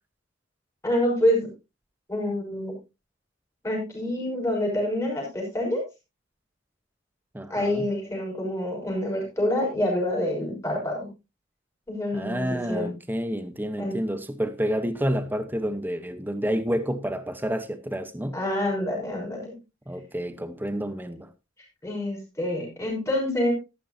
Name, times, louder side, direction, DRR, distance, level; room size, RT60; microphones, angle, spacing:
voice 1, 0.8-1.5 2.1-2.7 3.6-5.8 7.5-11.1 11.9-12.9 13.8-13.9 18.3-19.5 21.8-23.5, left 1 dB, 15° left, 5.9 m, -27 dB
voice 2, 7.3-7.9 12.1-18.4 19.9-21.3, equal, 10° right, 0.8 m, -29 dB
13.0 x 12.0 x 2.7 m
head